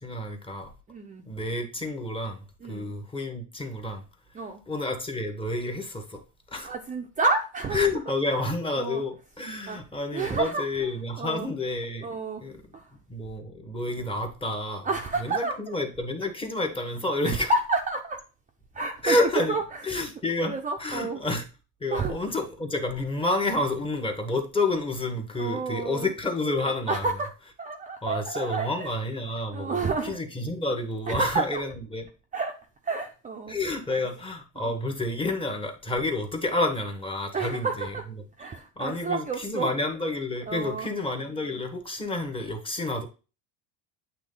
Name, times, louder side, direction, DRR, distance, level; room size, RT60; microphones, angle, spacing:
voice 1, 0.0-0.7 1.2-4.0 4.7-6.2 6.5-6.7 7.7-12.1 12.4-12.6 13.1-14.9 15.2-17.5 19.0-20.5 20.8-21.4 21.8-27.0 28.0-32.0 33.5-37.9 38.8-43.1, left 2 dB, 15° left, 1.3 m, -29 dB
voice 2, 0.9-1.2 2.6-2.9 4.3-4.6 6.6-7.8 8.7-9.0 9.7-9.8 10.1-10.9 11.2-11.5 12.0-12.4 12.7-12.9 14.8-15.7 17.2-18.2 18.7-19.8 20.4-21.2 21.9-22.2 25.4-26.1 26.9-27.3 27.6-28.9 29.5-30.2 31.1-31.6 32.3-32.6 32.8-33.6 33.9-34.0 34.6-34.7 37.3-38.0 38.4-39.7 40.5-40.9, right 3 dB, 20° right, 0.7 m, -30 dB
8.4 x 3.2 x 3.8 m
cardioid pair, 125°, 35 cm